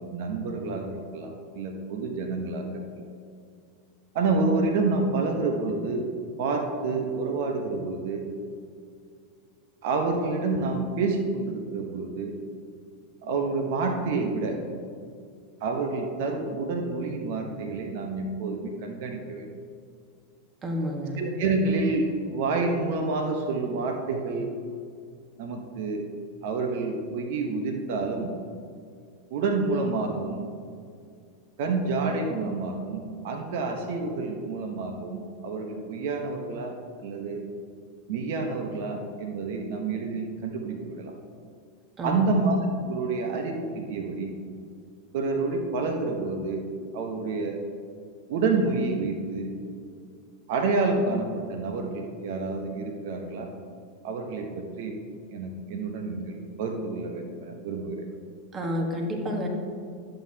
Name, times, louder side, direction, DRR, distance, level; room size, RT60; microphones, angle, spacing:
voice 1, 0.1-3.0 4.1-6.1 6.4-8.3 9.8-12.3 13.2-14.6 15.6-19.5 21.2-24.5 25.4-26.0 26.4-28.3 29.3-30.5 31.6-37.4 38.1-41.1 42.0-44.3 45.1-46.6 46.9-47.6 48.3-49.5 50.5-53.5 54.0-55.0 55.3-58.1, right 3 dB, 65° right, 4 dB, 0.9 m, -28 dB
voice 2, 20.6-21.2 42.0-42.2 58.5-59.5, equal, 25° right, 2 dB, 1.4 m, -29 dB
11.0 x 7.8 x 2.8 m, 2.2 s
hypercardioid pair, 105°, 0 cm